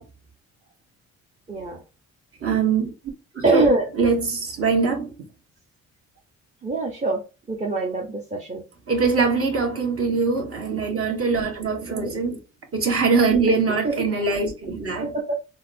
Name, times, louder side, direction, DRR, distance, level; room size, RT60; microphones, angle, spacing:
voice 1, 1.5-1.8 3.4-3.9 6.6-7.2 7.5-8.6 11.9-12.1 13.8-13.9 15.0-15.4, right 2 dB, 25° right, 0.7 m, -23 dB
voice 2, 2.4-2.9 3.3-3.6 4.0-5.1 8.9-12.4 12.7-15.1, right 4 dB, 50° right, 1.3 m, -22 dB
4.0 x 2.1 x 2.5 m
cardioid pair, 90°, 30 cm